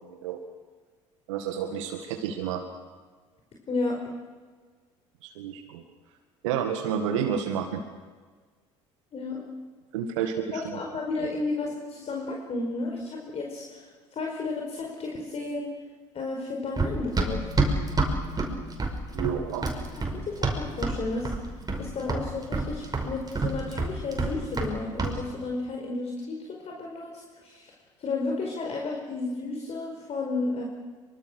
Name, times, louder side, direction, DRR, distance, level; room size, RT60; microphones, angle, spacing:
voice 1, 1.3-2.6 5.2-5.8 6.4-7.8 9.9-10.8 19.1-19.7, right 8 dB, 75° right, 5 dB, 1.9 m, -30 dB
voice 2, 3.7-4.0 9.1-9.4 10.5-15.7 16.1-17.5 19.9-21.5 21.8-27.7 28.0-30.6, left 3 dB, 40° left, 0 dB, 4.8 m, -32 dB
Run, 16.8-21.0 21.3-21.8 22.1-24.7 25.0-25.2, right 3 dB, 25° right, 5.6 m, -27 dB
24.5 x 24.0 x 6.4 m, 1.5 s
hypercardioid pair, 65°, 16 cm